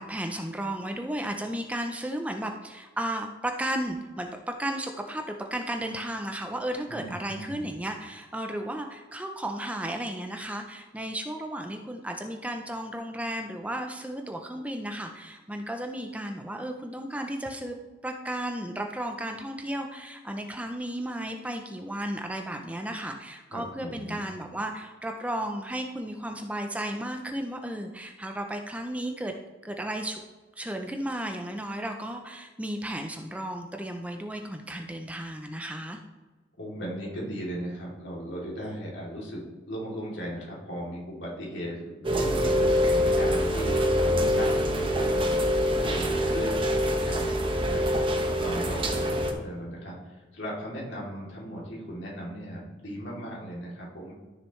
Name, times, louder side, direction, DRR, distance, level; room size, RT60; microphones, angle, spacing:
voice 1, 0.0-17.8 18.0-29.3 29.6-30.2 30.6-36.0, right 1 dB, 5° right, 4 dB, 0.5 m, -34 dB
voice 2, 6.9-7.7 23.5-24.3 36.6-54.1, equal, 75° left, -4 dB, 3.1 m, -38 dB
Rain, 42.0-49.3, equal, 30° right, 1.0 m, -25 dB
13.0 x 6.6 x 3.2 m, 1.3 s
head